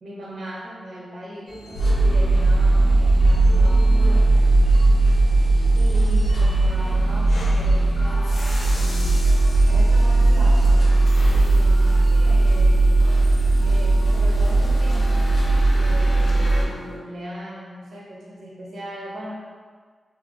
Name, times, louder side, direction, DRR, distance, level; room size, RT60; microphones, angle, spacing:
voice 1, 0.0-1.6 2.0-4.4 5.7-9.1 9.7-10.8 11.2-12.9 13.6-15.3 15.7-19.3, equal, 70° right, -4 dB, 0.9 m, -38 dB
sound 1, 1.5-17.0, left 1 dB, 10° right, 0.8 m, -37 dB
sound 2, 1.8-16.6, right 2 dB, 90° left, 0.7 m, -17 dB
5.5 x 2.1 x 2.6 m, 1.6 s
wide cardioid pair, 145°, 0 cm